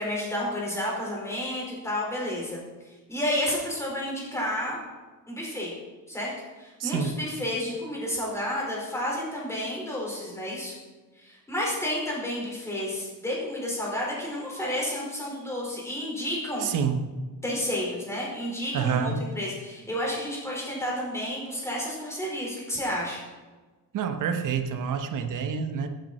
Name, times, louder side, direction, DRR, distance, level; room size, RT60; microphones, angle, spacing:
voice 1, 0.0-2.6 2.8-4.8 5.3-5.7 6.1-6.3 6.6-10.7 11.2-16.7 17.4-23.2, left 1 dB, 5° left, -4 dB, 4.9 m, -31 dB
voice 2, 6.8-7.1 16.6-17.0 18.7-19.2 23.9-25.9, right 7 dB, 60° right, 7 dB, 1.2 m, -27 dB
15.5 x 9.4 x 4.4 m, 1.3 s
cardioid pair, 145°, 36 cm